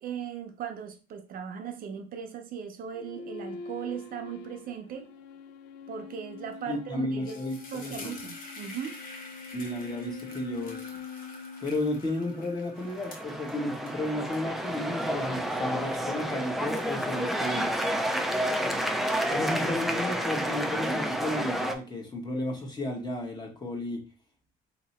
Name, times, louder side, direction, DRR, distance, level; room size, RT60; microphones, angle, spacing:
voice 1, 0.0-5.1 5.9-7.4 7.7-9.0, right 8 dB, 55° right, 0.7 m, -38 dB
sound 1, 2.9-12.6, left 5 dB, 90° left, 0.4 m, -44 dB
sound 2, 6.5-6.7 7.0-18.6 18.9-20.9, left 2 dB, 55° left, 1.0 m, -49 dB
voice 2, 6.7-8.1 9.5-10.9 11.6-17.7 19.3-24.0, left 1 dB, 25° left, 1.2 m, -33 dB
sound 3, 12.8-21.7, equal, ahead, 0.4 m, -30 dB
2.9 x 2.7 x 4.2 m
cardioid pair, 110°, 17 cm